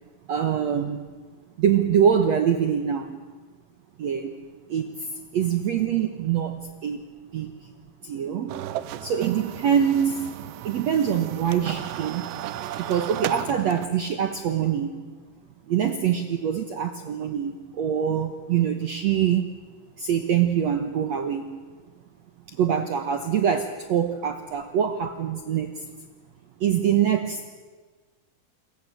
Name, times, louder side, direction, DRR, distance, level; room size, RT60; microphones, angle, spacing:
voice 1, 0.3-1.0 1.6-3.2 4.0-4.3 4.7-7.0 7.3-7.5 8.0-8.5 9.0-10.3 10.6-12.2 12.8-15.0 15.7-19.4 20.0-21.6 22.5-25.8 26.6-27.4, right 8 dB, 75° right, 8 dB, 1.6 m, -24 dB
sound 1, 8.5-13.9, right 12 dB, 90° right, 3.1 m, -34 dB
28.0 x 23.5 x 7.7 m, 1.4 s
omnidirectional pair, 4.8 m